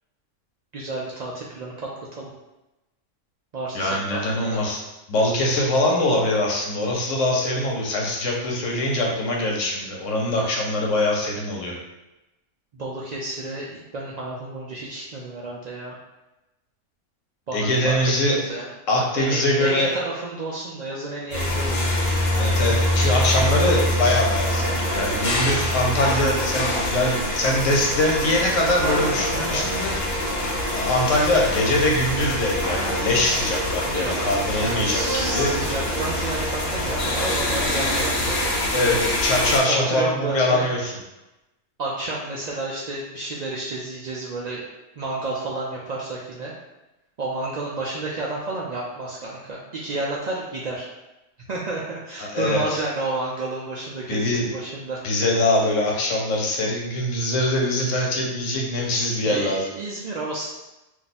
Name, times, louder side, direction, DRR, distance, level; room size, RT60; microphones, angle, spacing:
voice 1, 0.7-1.9 2.2-2.3 3.5-4.6 12.7-16.0 17.5-18.7 19.1-21.9 29.3-29.7 33.9-38.4 39.7-40.7 41.8-44.6 45.0-46.5 47.2-50.9 51.5-55.0 59.3-60.5, right 2 dB, 75° right, -5 dB, 0.4 m, -31 dB
voice 2, 3.7-4.8 5.1-11.8 17.5-18.4 18.9-19.9 22.4-29.9 30.7-35.5 38.7-40.9 52.2-52.8 54.1-54.5 55.0-59.6, left 1 dB, 80° left, -1 dB, 1.1 m, -23 dB
sound 1, 21.3-39.6, left 1 dB, 60° left, 0.8 m, -24 dB
2.5 x 2.3 x 4.0 m, 0.99 s
omnidirectional pair, 1.3 m